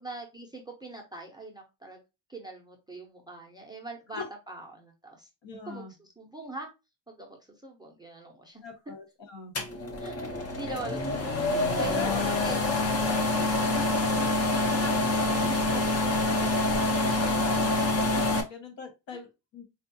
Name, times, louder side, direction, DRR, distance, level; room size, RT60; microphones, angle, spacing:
voice 1, 0.0-2.0 2.3-5.3 5.6-6.7 7.1-8.6 10.0-11.5 11.8-12.7 15.1-16.6 18.4-18.5 19.1-19.2, right 2 dB, 10° right, 2 dB, 0.5 m, -42 dB
voice 2, 5.4-5.9 8.6-9.5 11.9-12.1 13.6-14.5 14.8-15.8 17.0-17.7 18.5-19.6, left 4 dB, 70° left, 4 dB, 1.2 m, -41 dB
sound 1, 9.5-18.4, left 2 dB, 35° left, 0.6 m, -26 dB
4.3 x 2.3 x 2.6 m, 0.25 s
wide cardioid pair, 170°, 46 cm